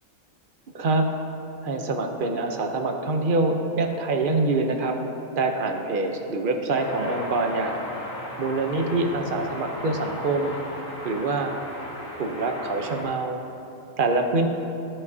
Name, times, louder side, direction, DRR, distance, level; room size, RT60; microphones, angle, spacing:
voice 1, 0.7-1.1 1.6-5.0 5.4-7.8 8.4-10.6 11.0-11.5 12.2-13.4 14.0-14.5, right 3 dB, 50° right, 4 dB, 0.7 m, -25 dB
sound 1, 6.8-13.0, left 1 dB, 45° left, 2.0 m, -36 dB
15.0 x 5.4 x 2.7 m, 2.8 s
omnidirectional pair, 1.4 m